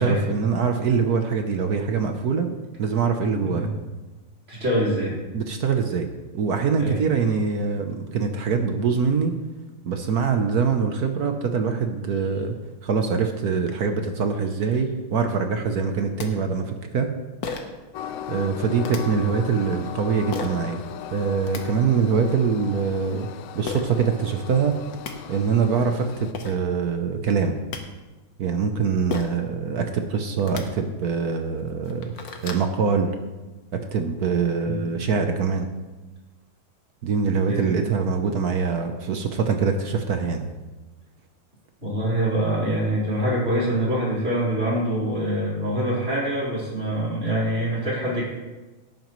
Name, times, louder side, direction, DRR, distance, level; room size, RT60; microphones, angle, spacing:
voice 1, 0.0-2.5 2.8-3.7 5.3-6.1 6.3-9.4 9.8-12.6 12.8-17.2 18.3-20.8 21.1-23.3 23.5-24.8 25.3-27.6 28.4-32.1 32.4-33.1 33.7-35.7 37.0-40.4, right 5 dB, 60° right, 5 dB, 1.1 m, -24 dB
voice 2, 3.3-3.7 4.5-5.2 6.8-7.0 34.7-34.8 37.5-37.7 41.8-48.2, right 1 dB, 35° right, -7 dB, 4.5 m, -25 dB
sound 1, 16.2-16.3 17.4-17.8 18.8-19.0 20.3-20.6 21.2-21.6 23.7-23.8 24.6-24.7 24.9-25.1 26.0-26.1 26.3-26.6 27.4-27.8 29.1-29.4 30.4-30.6 31.3-31.4 31.8-32.7, left 5 dB, 50° left, 1.4 m, -33 dB
Train, 17.9-26.3, left 9 dB, 70° left, 1.2 m, -37 dB
17.0 x 9.1 x 3.1 m, 1.2 s
omnidirectional pair, 2.3 m